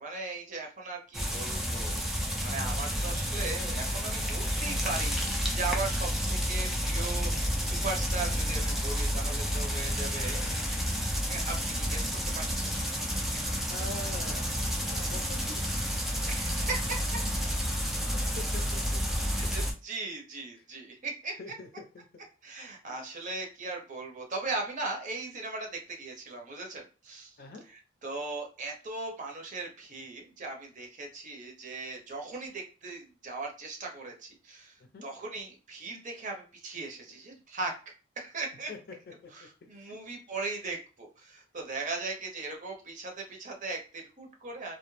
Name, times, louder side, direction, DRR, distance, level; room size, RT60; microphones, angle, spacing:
voice 1, 0.0-2.0 2.4-10.8 11.3-12.1 12.3-12.4 16.3-17.0 19.2-21.5 22.4-27.4 27.7-37.7 38.2-38.7 39.3-44.8, right 3 dB, 40° right, 2 dB, 0.6 m, -38 dB
sound 1, 1.1-19.7, equal, ahead, 0.4 m, -30 dB
voice 2, 13.7-15.7 17.9-19.0 21.4-21.7 21.9-22.2 27.4-27.6 34.9-35.0 38.7-38.8 39.7-40.0, left 2 dB, 55° left, 4 dB, 0.6 m, -44 dB
2.2 x 2.0 x 3.1 m, 0.35 s
head